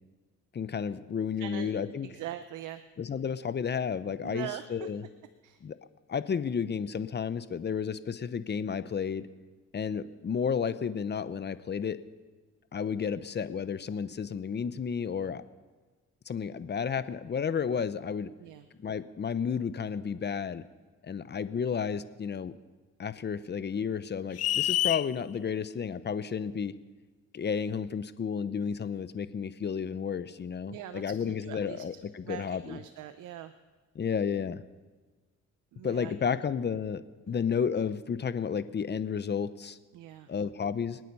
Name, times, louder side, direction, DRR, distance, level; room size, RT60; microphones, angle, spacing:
voice 1, 0.5-2.1 3.0-5.0 5.6-5.8 6.1-9.3 9.7-12.0 12.7-15.4 16.3-18.3 18.8-20.6 21.0-22.5 23.0-26.8 27.3-32.8 33.9-34.6 35.8-37.0 37.3-39.8 40.3-41.0, left 6 dB, 35° left, 14 dB, 0.8 m, -32 dB
voice 2, 1.4-1.7 2.0-2.8 4.2-4.9 5.4-5.6 18.4-18.7 30.7-31.8 32.2-33.5 35.7-36.1 39.9-40.3, right 12 dB, 85° right, 11 dB, 0.7 m, -42 dB
sound 1, 24.4-25.1, left 14 dB, 55° left, 0.4 m, -27 dB
26.5 x 9.2 x 5.5 m, 1.4 s
cardioid pair, 90°, 30 cm